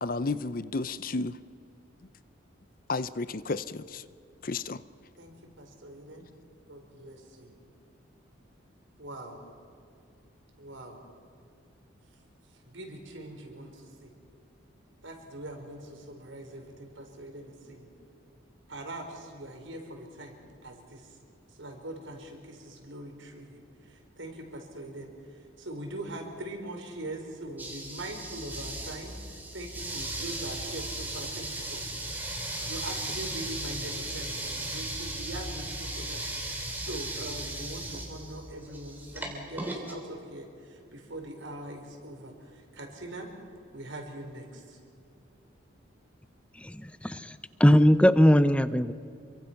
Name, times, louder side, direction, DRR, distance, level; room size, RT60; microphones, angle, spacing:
voice 1, 0.0-1.3 2.9-4.0 4.4-4.8, left 3 dB, 45° left, 15 dB, 0.6 m, -32 dB
voice 2, 5.2-6.3 6.7-7.5 9.0-9.4 10.6-11.0 12.6-14.1 15.0-17.9 18.7-21.2 21.5-31.9 32.6-43.3 43.7-44.8, right 1 dB, 75° right, 3 dB, 4.5 m, -42 dB
sound 1, 27.6-39.9, right 1 dB, 10° right, 3.2 m, -36 dB
voice 3, 46.6-48.9, equal, 5° left, 13 dB, 0.6 m, -21 dB
28.0 x 24.0 x 5.9 m, 2.5 s
head